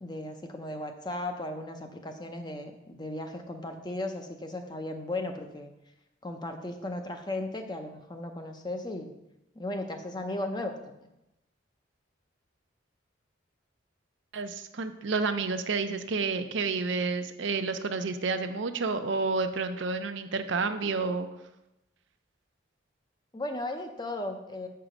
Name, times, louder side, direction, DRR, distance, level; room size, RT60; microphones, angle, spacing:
voice 1, 0.0-5.7 6.2-9.1 9.6-10.7 23.3-24.7, left 1 dB, 20° left, 5 dB, 0.6 m, -36 dB
voice 2, 14.3-21.3, right 4 dB, 70° right, 8 dB, 0.6 m, -30 dB
7.4 x 4.6 x 5.0 m, 0.91 s
head